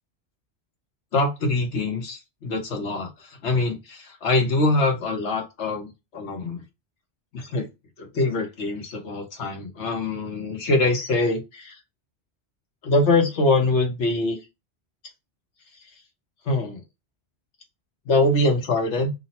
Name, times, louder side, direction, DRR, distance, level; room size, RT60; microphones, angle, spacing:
voice 1, 1.1-6.6 7.3-7.7 8.0-11.8 12.8-14.4 16.4-16.8 18.0-19.1, left 2 dB, 85° left, 2 dB, 1.4 m, -24 dB
3.4 x 2.1 x 4.1 m, 0.23 s
omnidirectional pair, 1.2 m